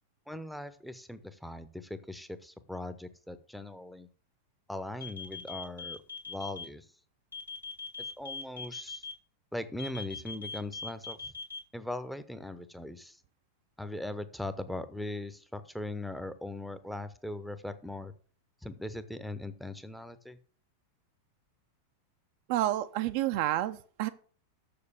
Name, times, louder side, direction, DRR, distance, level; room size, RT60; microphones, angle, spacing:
voice 1, 0.3-4.1 4.7-6.0 6.3-6.9 8.0-9.0 9.5-11.3 11.7-13.2 13.8-18.1 18.6-20.4, left 1 dB, ahead, 12 dB, 0.8 m, -40 dB
sound 1, 5.0-6.6 7.3-9.1 9.8-11.6, left 4 dB, 85° left, 2.0 m, -40 dB
voice 2, 22.5-24.1, right 14 dB, 45° right, 9 dB, 0.5 m, -29 dB
6.8 x 6.7 x 6.9 m, 0.43 s
figure-of-eight pair, 90°, 0 cm